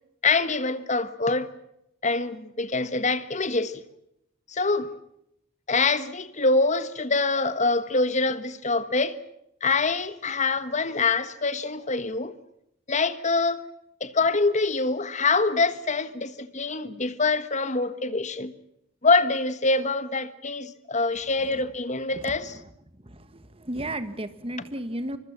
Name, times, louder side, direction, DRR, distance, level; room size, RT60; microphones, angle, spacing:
voice 1, 0.2-1.5 2.0-3.8 4.5-4.9 5.7-9.2 9.6-12.3 12.9-13.6 14.0-18.5 19.0-22.5, left 3 dB, 35° left, 1.4 m, -25 dB
voice 2, 22.1-22.6 23.0-25.2, right 1 dB, 25° right, 1.6 m, -35 dB
25.0 x 23.5 x 7.3 m
head